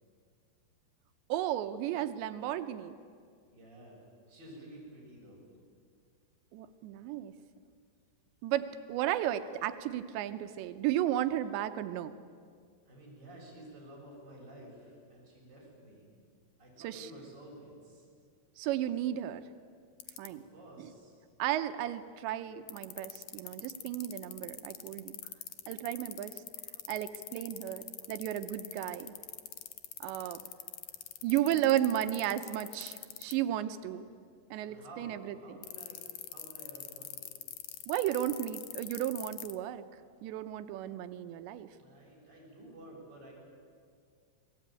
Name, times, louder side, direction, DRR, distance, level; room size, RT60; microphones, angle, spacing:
voice 1, 1.3-3.0 6.5-7.3 8.4-12.1 16.8-17.1 18.6-19.4 20.2-20.4 20.8-20.9 21.4-25.1 25.7-26.4 26.9-29.1 30.0-30.4 31.2-34.1 34.5-35.6 37.9-39.8 40.2-41.7, right 12 dB, 90° right, 9 dB, 3.2 m, -34 dB
voice 2, 3.5-5.4 12.8-16.1 16.6-18.1 20.3-21.2 30.3-31.0 31.5-31.7 34.6-37.3 41.8-43.3, right 1 dB, 25° right, -3 dB, 7.8 m, -52 dB
sound 1, 20.0-20.3 22.7-33.3 35.6-39.5, left 13 dB, 70° left, 1.9 m, -42 dB
29.0 x 21.0 x 9.1 m, 2.1 s
omnidirectional pair, 5.0 m